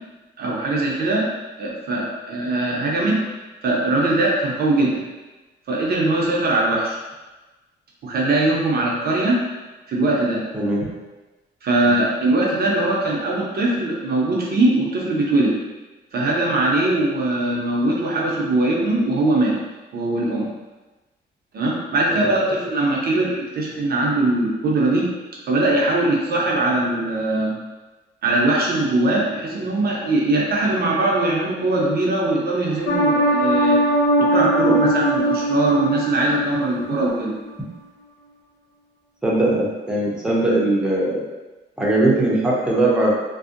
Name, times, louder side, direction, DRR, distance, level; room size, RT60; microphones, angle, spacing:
voice 1, 0.4-1.3 1.6-3.2 3.6-5.0 5.7-7.0 8.0-9.4 9.9-10.4 10.8-10.9 11.6-15.6 16.1-19.6 19.9-20.5 21.5-25.1 25.5-27.6 28.2-33.8 34.2-37.3, right 2 dB, 55° right, -3 dB, 0.6 m, -21 dB
voice 2, 10.5-10.9 22.2-22.3 39.2-41.2 41.8-43.1, right 2 dB, 5° right, -5 dB, 0.6 m, -20 dB
sound 1, 32.9-37.1 37.5-37.6, right 1 dB, 60° left, 0.4 m, -20 dB
2.6 x 2.0 x 2.4 m, 1.2 s
cardioid pair, 90°, 20 cm